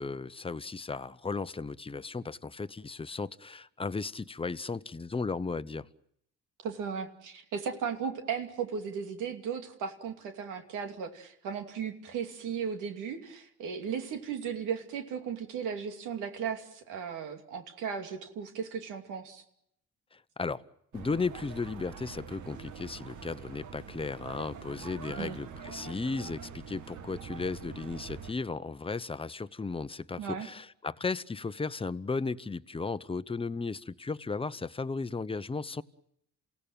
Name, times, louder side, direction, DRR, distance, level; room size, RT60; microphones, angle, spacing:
voice 1, 0.0-5.9 20.1-20.6 20.9-35.8, left 4 dB, 20° left, 0.9 m, -35 dB
voice 2, 6.6-19.4 25.2-25.4 30.2-30.5, right 7 dB, 90° right, 2.8 m, -36 dB
sound 1, 20.9-28.3, right 6 dB, 75° right, 2.0 m, -45 dB
28.0 x 17.0 x 9.0 m
cardioid pair, 90°, 30 cm